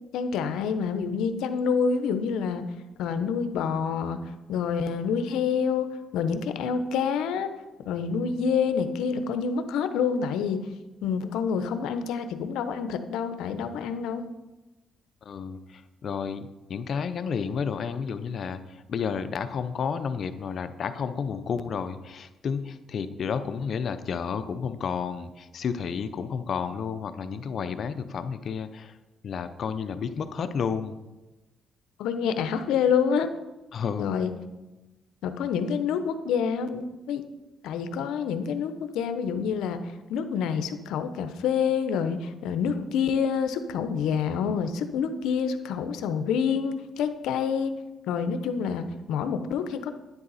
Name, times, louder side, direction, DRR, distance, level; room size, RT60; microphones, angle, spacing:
voice 1, 0.1-2.6 3.0-4.2 4.5-7.5 7.9-10.7 11.0-14.2 32.0-33.3 34.0-34.4 35.2-37.2 37.6-47.7 48.1-49.9, left 6 dB, 90° left, 9 dB, 0.8 m, -27 dB
voice 2, 15.2-28.9 29.2-31.0 33.7-34.1, left 6 dB, 55° left, 11 dB, 0.7 m, -31 dB
10.5 x 10.5 x 4.1 m, 1.1 s
cardioid pair, 90°, 0 cm